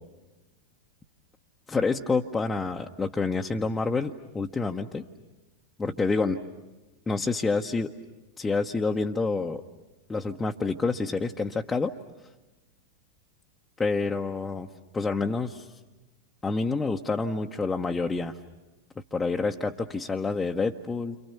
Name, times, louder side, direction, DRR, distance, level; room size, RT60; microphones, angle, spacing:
voice 1, 1.7-5.1 5.8-6.4 7.1-7.9 8.4-9.6 10.1-11.9 13.8-15.7 16.4-18.4 19.1-21.2, left 3 dB, 15° left, 1 dB, 0.9 m, -28 dB
30.0 x 27.0 x 6.9 m, 1.1 s
figure-of-eight pair, 90°, 0 cm